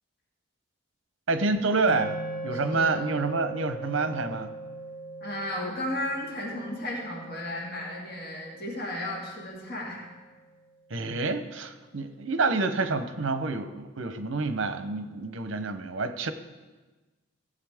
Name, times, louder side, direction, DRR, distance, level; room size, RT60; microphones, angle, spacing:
voice 1, 1.3-2.2 2.4-4.5 10.9-16.3, right 3 dB, 70° right, 10 dB, 0.8 m, -28 dB
sound 1, 1.9-10.3, right 1 dB, 75° left, 1.7 m, -40 dB
voice 2, 5.2-10.1, left 1 dB, 45° left, -3 dB, 2.2 m, -34 dB
16.5 x 7.7 x 3.6 m, 1.2 s
head